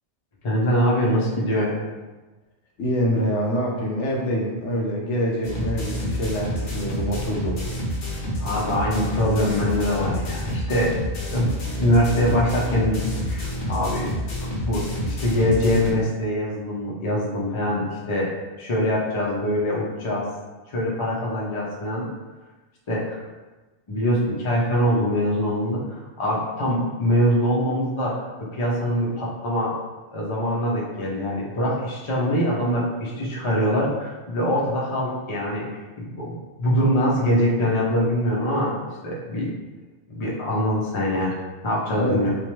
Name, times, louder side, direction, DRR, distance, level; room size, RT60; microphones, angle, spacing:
voice 1, 0.4-1.8 8.4-11.0 11.3-13.0 13.3-14.1 14.4-20.2 20.7-22.1 22.9-23.2 23.9-25.8 26.2-29.7 30.1-35.7 36.0-39.5 40.1-41.3 41.6-42.3, equal, 35° left, -4 dB, 0.5 m, -23 dB
voice 2, 2.8-7.6 42.0-42.2, equal, 90° left, -1 dB, 0.9 m, -25 dB
sound 1, 5.4-15.9, equal, 60° left, 0.8 m, -28 dB
3.0 x 2.1 x 3.0 m, 1.2 s
omnidirectional pair, 1.2 m